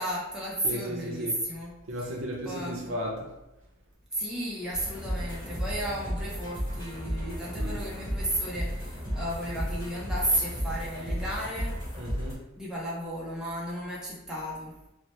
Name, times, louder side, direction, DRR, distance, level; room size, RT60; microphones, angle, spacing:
voice 1, 0.0-1.7 2.0-2.1 2.4-3.0 4.1-11.7 12.6-14.7, right 1 dB, 5° right, -6 dB, 0.5 m, -33 dB
voice 2, 0.6-1.4 1.9-3.3 7.5-7.8 12.0-12.4, equal, 60° right, -1 dB, 0.6 m, -35 dB
sound 1, 4.7-12.3, equal, 25° left, 1.3 m, -34 dB
2.7 x 2.1 x 3.1 m, 0.91 s
head